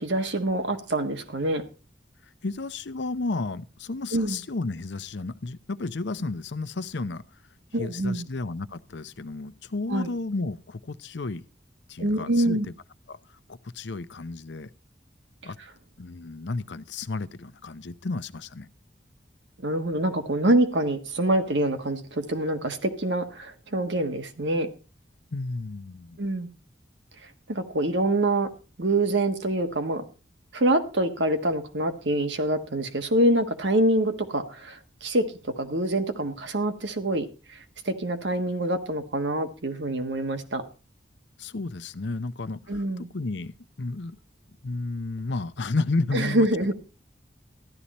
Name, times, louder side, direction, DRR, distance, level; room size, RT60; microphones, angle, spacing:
voice 1, 0.0-1.6 4.1-4.4 7.7-8.3 9.9-10.1 12.0-12.7 19.6-24.7 26.2-26.5 27.5-28.5 28.8-30.0 30.5-37.6 37.8-40.6 42.7-43.1 46.1-46.7, right 1 dB, 75° right, 7 dB, 1.5 m, -25 dB
voice 2, 2.4-7.2 7.8-11.4 11.9-12.6 13.1-13.2 13.5-14.7 15.4-15.6 16.0-18.7 25.3-26.2 41.4-43.5 43.8-44.2 44.6-46.5, left 3 dB, 75° left, 13 dB, 0.7 m, -32 dB
14.0 x 11.5 x 4.2 m, 0.34 s
head